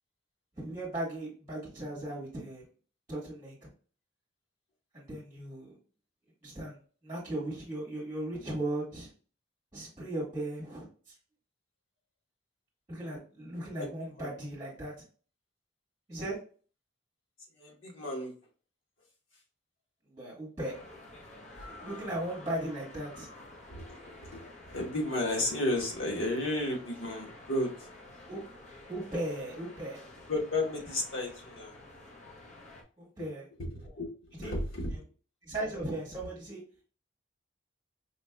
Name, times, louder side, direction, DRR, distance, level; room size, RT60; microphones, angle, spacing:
voice 1, 0.6-2.6 3.1-3.7 4.9-5.8 6.4-6.8 7.0-9.1 9.7-10.9 12.9-14.9 16.1-16.4 20.1-20.8 21.8-23.3 28.3-28.4 28.9-30.0 33.0-33.4 34.4-34.5 35.4-36.6, right 1 dB, 15° right, -6 dB, 1.5 m, -37 dB
voice 2, 17.6-18.3 23.7-27.9 30.3-31.8 33.2-33.3 33.6-35.1, left 1 dB, 90° left, -1 dB, 1.2 m, -33 dB
sound 1, 20.6-32.8, left 2 dB, 35° left, 0.7 m, -50 dB
5.1 x 2.7 x 2.3 m, 0.39 s
head